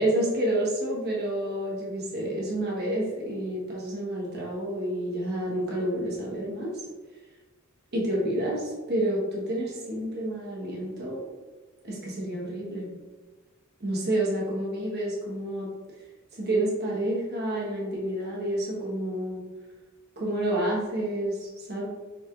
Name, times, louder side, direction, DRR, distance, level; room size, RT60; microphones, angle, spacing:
voice 1, 0.0-6.7 7.9-11.2 11.8-12.9 13.8-15.7 16.4-19.4 20.2-21.9, right 1 dB, 50° right, -5 dB, 1.1 m, -29 dB
3.9 x 3.2 x 2.4 m, 1.3 s
head